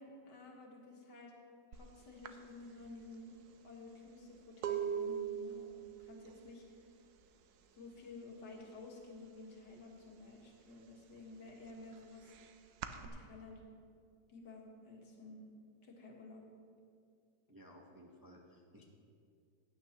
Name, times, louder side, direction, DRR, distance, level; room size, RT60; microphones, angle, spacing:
voice 1, 0.0-1.3 1.7-3.4 3.6-6.9 7.7-12.3 13.0-13.6 14.3-15.4 15.8-16.4, left 3 dB, 90° left, -1 dB, 2.1 m, -52 dB
sound 1, 1.7-1.9 2.2-8.7 9.0-10.1 10.5-13.1, right 8 dB, 75° right, 1.1 m, -42 dB
voice 2, 17.5-18.8, equal, 20° right, -1 dB, 0.5 m, -58 dB
16.0 x 9.3 x 2.9 m, 2.3 s
omnidirectional pair, 1.8 m